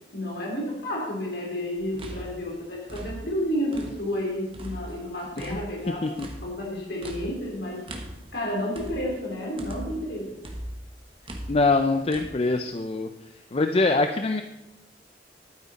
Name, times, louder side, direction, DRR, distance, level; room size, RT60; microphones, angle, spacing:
voice 1, 0.1-6.1 6.4-7.8 8.3-10.5, equal, 70° left, -2 dB, 3.3 m, -31 dB
sound 1, 1.8-4.2 4.5-10.1 10.4-12.3, right 1 dB, 30° right, 1.3 m, -40 dB
voice 2, 11.5-13.1 13.5-14.4, left 3 dB, 35° left, 7 dB, 0.5 m, -23 dB
12.0 x 9.4 x 4.1 m, 0.96 s
head